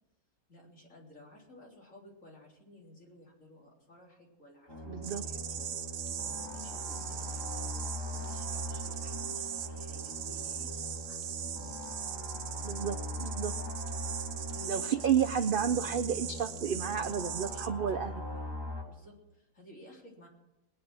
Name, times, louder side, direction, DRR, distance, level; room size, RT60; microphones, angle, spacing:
voice 1, 0.5-5.7 6.4-7.7 8.1-11.7 14.5-15.1 17.4-18.5 18.9-20.3, left 1 dB, 55° left, -2 dB, 4.0 m, -55 dB
sound 1, 4.7-18.8, left 1 dB, 15° left, 2.6 m, -41 dB
voice 2, 4.9-5.2 12.6-13.6 14.7-18.1, right 8 dB, 60° right, 9 dB, 0.5 m, -31 dB
sound 2, 5.0-17.7, right 10 dB, 90° right, 1.3 m, -40 dB
20.0 x 9.5 x 6.2 m, 0.95 s
omnidirectional pair, 1.6 m